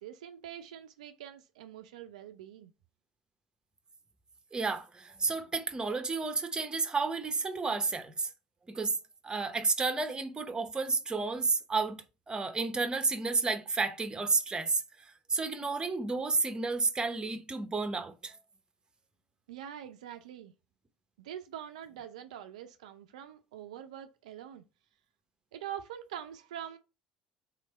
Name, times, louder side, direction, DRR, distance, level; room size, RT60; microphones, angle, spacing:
voice 1, 0.0-2.7 19.5-20.5 21.2-24.6 25.5-26.8, right 10 dB, 75° right, 0.4 m, -44 dB
voice 2, 4.5-8.3 8.7-8.9 9.2-14.8 15.3-18.4, right 4 dB, 20° right, 0.8 m, -31 dB
3.7 x 3.2 x 4.2 m
hypercardioid pair, 65°, 4 cm